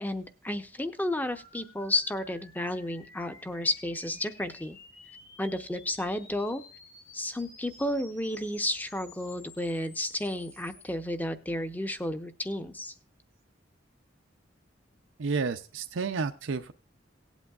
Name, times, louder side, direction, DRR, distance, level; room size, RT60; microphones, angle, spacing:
voice 1, 0.0-4.8 5.4-6.6 7.1-12.9, left 1 dB, 10° left, 10 dB, 0.7 m, -32 dB
sound 1, 1.0-10.9, left 3 dB, 85° left, 5.2 m, -53 dB
voice 2, 15.2-16.7, right 4 dB, 85° right, 7 dB, 0.6 m, -31 dB
18.0 x 8.2 x 2.4 m, 0.39 s
head